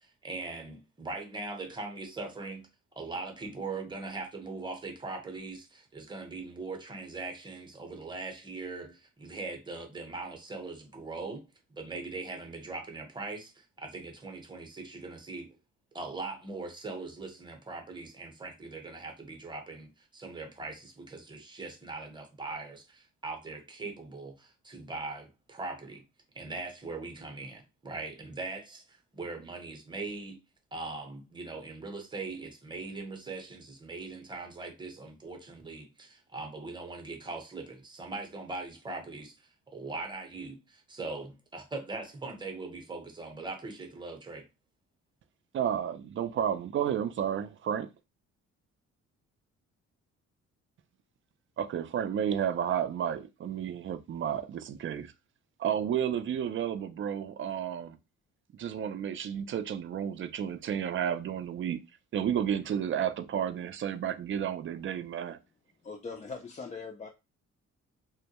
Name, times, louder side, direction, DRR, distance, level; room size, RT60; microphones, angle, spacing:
voice 1, 0.0-2.7 3.0-11.4 11.7-15.6 15.9-26.0 26.3-30.4 30.7-44.4, right 3 dB, 15° right, 0.8 m, -40 dB
voice 2, 45.5-47.9 51.6-55.1 55.6-58.0 58.5-61.8 62.1-65.4, right 9 dB, 45° right, 0.4 m, -31 dB
voice 3, 65.8-67.1, left 4 dB, 25° left, 0.4 m, -41 dB
2.1 x 2.1 x 2.8 m
cardioid pair, 90°, 30 cm